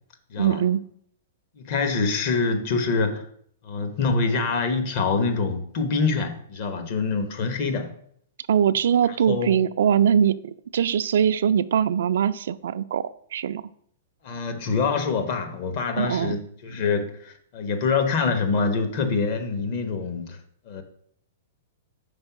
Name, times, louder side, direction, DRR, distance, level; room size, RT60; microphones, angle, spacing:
voice 1, 0.4-0.8 8.5-13.6 15.9-16.4, right 8 dB, 75° right, 13 dB, 0.3 m, -22 dB
voice 2, 1.6-3.2 3.6-7.9 9.3-9.6 14.2-20.4 20.7-20.8, left 4 dB, 50° left, 7 dB, 1.0 m, -25 dB
5.3 x 4.0 x 5.8 m, 0.65 s
hypercardioid pair, 145°, 0 cm